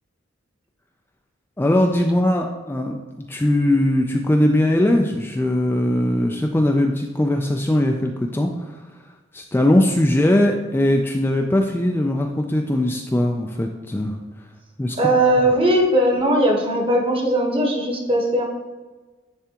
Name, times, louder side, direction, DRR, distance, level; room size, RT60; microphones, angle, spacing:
voice 1, 1.6-3.0 3.3-8.8 9.3-14.2 14.8-15.0, left 1 dB, 10° left, 2 dB, 0.3 m, -20 dB
voice 2, 15.0-18.4, right 1 dB, 30° right, 0 dB, 1.2 m, -19 dB
10.0 x 3.4 x 2.9 m, 1.2 s
head